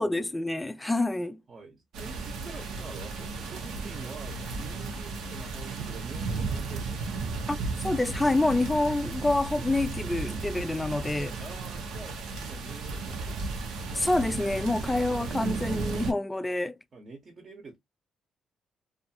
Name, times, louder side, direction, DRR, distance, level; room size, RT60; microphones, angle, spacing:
voice 1, 0.0-1.4 7.5-11.4 13.9-16.8, left 2 dB, 15° left, 0.3 m, -27 dB
voice 2, 1.5-7.7 11.4-13.5 16.9-17.8, right 4 dB, 45° right, 0.8 m, -47 dB
sound 1, 1.9-16.1, right 4 dB, 85° right, 0.7 m, -34 dB
2.5 x 2.4 x 2.7 m
cardioid pair, 90°, 0 cm